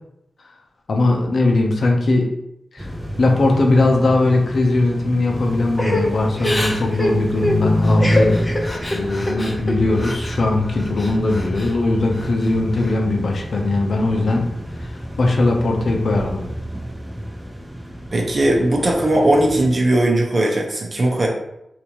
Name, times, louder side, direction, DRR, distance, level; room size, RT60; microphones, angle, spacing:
voice 1, 0.9-2.3 2.7-2.9 3.2-8.5 8.9-14.5 14.8-14.9 15.2-16.4, left 2 dB, 70° left, 1 dB, 0.7 m, -19 dB
sound 1, 2.8-19.7, equal, 10° right, 0.7 m, -28 dB
Crying sobbing / Breathing, 5.8-10.4 10.8-11.7 12.1-12.9, left 1 dB, 30° left, 0.8 m, -25 dB
voice 2, 18.1-21.3, right 1 dB, 50° right, 0 dB, 0.9 m, -18 dB
3.6 x 2.8 x 3.0 m, 0.84 s
cardioid pair, 45°, 0 cm